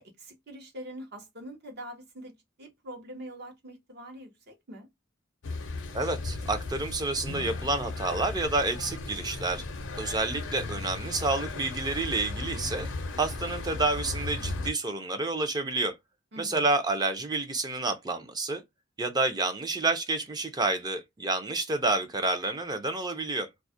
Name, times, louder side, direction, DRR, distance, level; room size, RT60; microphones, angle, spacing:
voice 1, 0.0-4.9 16.3-16.7, right 1 dB, 55° right, 0.7 m, -44 dB
sound 1, 5.4-14.7, left 3 dB, 75° left, 0.5 m, -36 dB
voice 2, 5.9-9.6 10.0-12.9 13.2-15.9 16.4-18.6 19.0-23.5, right 3 dB, 20° right, 0.4 m, -29 dB
2.3 x 2.1 x 2.6 m
head